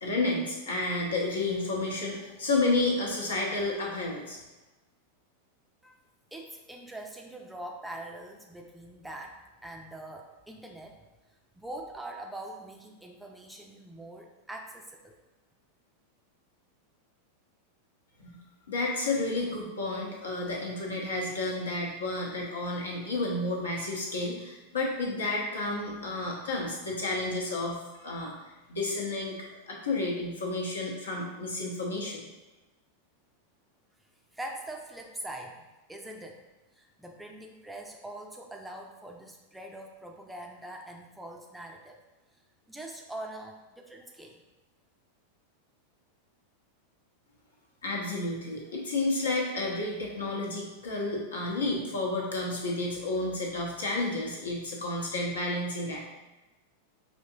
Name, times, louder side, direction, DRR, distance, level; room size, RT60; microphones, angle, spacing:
voice 1, 0.0-4.4 18.2-18.4 18.7-29.3 29.7-32.2 47.8-56.0, left 2 dB, 70° left, -2 dB, 0.9 m, -31 dB
voice 2, 6.3-11.0 11.6-15.2 34.3-36.4 36.7-42.0 42.7-44.4, right 1 dB, 5° right, 1 dB, 0.5 m, -43 dB
5.3 x 2.9 x 2.7 m, 1.1 s
figure-of-eight pair, 90°, 0 cm